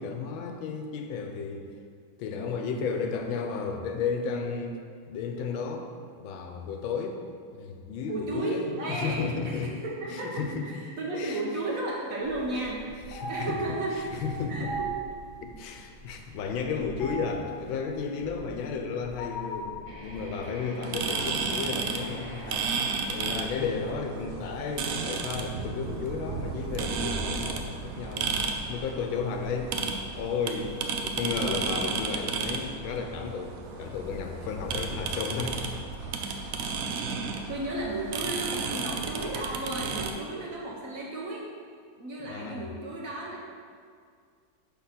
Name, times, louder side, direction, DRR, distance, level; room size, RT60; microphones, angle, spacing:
voice 1, 0.0-1.7 2.2-4.8 5.1-5.9 6.2-7.2 7.5-9.7 10.1-10.7 11.2-11.4 12.5-12.7 13.1-14.7 15.4-29.9 30.1-35.7 36.0-36.2 42.2-42.7, left 5 dB, 90° left, 4 dB, 1.5 m, -33 dB
voice 2, 8.1-14.1 14.5-14.9 29.0-29.1 37.5-41.5 42.0-43.6, right 2 dB, 55° right, -3 dB, 1.0 m, -34 dB
sound 1, 12.2-29.9, right 2 dB, 45° left, 1.0 m, -42 dB
sound 2, 19.8-24.7, right 1 dB, 40° right, 0.6 m, -46 dB
sound 3, 20.8-40.1, right 5 dB, 85° right, 0.7 m, -33 dB
5.9 x 4.0 x 5.7 m, 2.1 s
omnidirectional pair, 2.1 m